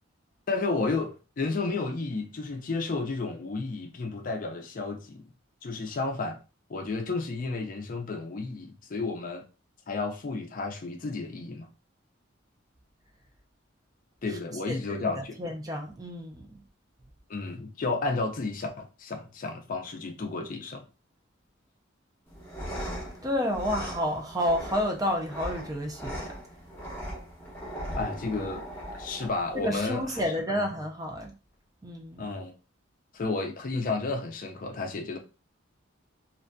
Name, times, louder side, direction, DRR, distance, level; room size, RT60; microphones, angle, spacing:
voice 1, 0.5-5.2 5.6-6.4 6.7-9.5 9.9-11.7 14.2-15.4 17.3-20.8 28.0-28.6 29.0-30.2 32.2-32.5 33.1-35.2, left 3 dB, 45° left, 0.4 m, -32 dB
voice 2, 14.7-16.5 23.2-26.3 29.5-31.3 31.8-32.3, equal, 20° right, 0.4 m, -30 dB
sound 1, 22.3-30.3, equal, 10° left, 0.9 m, -39 dB
2.5 x 2.5 x 2.2 m
head